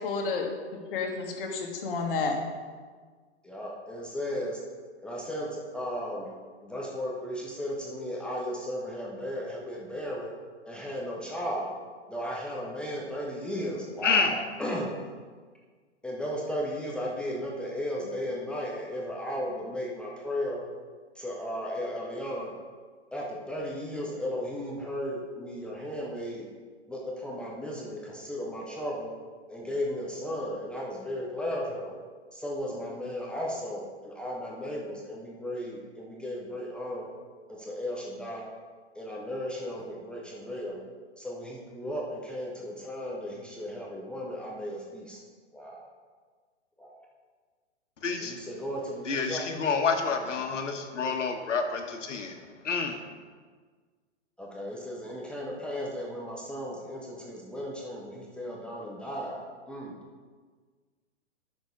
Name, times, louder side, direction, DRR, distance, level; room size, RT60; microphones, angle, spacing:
voice 1, 0.0-2.4, left 4 dB, 50° left, 1 dB, 1.8 m, -31 dB
voice 2, 3.4-4.6 5.0-6.3 6.6-10.3 10.7-11.7 12.1-14.9 16.0-20.6 21.2-22.5 23.1-26.5 26.9-29.1 29.5-31.9 32.3-37.1 37.5-38.4 39.0-40.8 41.2-45.2 45.5-45.8 46.8-46.9 48.2-49.4 50.4-50.5 54.4-59.4 59.7-59.9, equal, 5° left, -4 dB, 0.6 m, -35 dB
voice 3, 48.0-48.4 49.0-52.3 52.6-53.0, left 5 dB, 90° left, 5 dB, 1.5 m, -28 dB
9.2 x 6.2 x 5.2 m, 1.5 s
hypercardioid pair, 145°, 35 cm